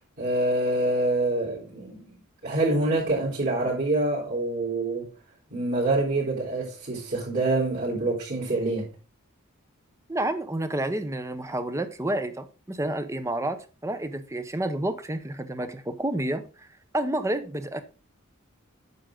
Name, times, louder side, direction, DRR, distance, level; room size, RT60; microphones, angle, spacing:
voice 1, 0.2-2.2 2.4-5.1 5.5-8.9, right 2 dB, 50° right, 3.9 m, -26 dB
voice 2, 10.1-16.7 16.9-17.8, right 1 dB, 15° right, 0.8 m, -30 dB
9.4 x 6.4 x 3.8 m
head